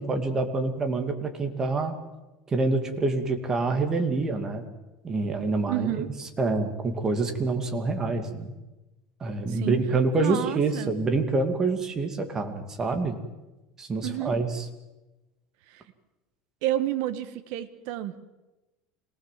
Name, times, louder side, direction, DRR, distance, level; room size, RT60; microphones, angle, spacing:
voice 1, 0.0-2.0 2.5-4.6 5.0-5.9 6.4-8.5 9.2-13.2 13.8-14.6, right 3 dB, 20° right, 6 dB, 2.5 m, -26 dB
voice 2, 5.7-6.1 9.5-9.8 10.2-10.9 14.0-14.3 15.7-15.8 16.6-18.2, right 14 dB, 65° right, 9 dB, 1.5 m, -30 dB
25.5 x 18.5 x 7.6 m, 1.1 s
cardioid pair, 150°, 3 cm